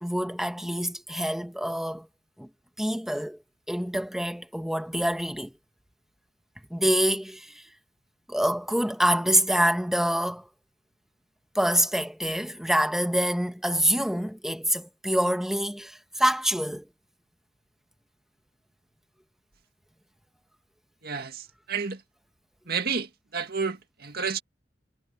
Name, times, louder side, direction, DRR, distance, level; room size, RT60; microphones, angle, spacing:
voice 1, 0.0-2.1 2.4-2.5 2.8-3.4 3.7-5.5 6.7-7.6 8.3-10.5 11.5-16.8, equal, ahead, 1.3 m, -26 dB
voice 2, 21.0-22.0 22.7-24.4, right 5 dB, 60° right, 2.1 m, -31 dB
head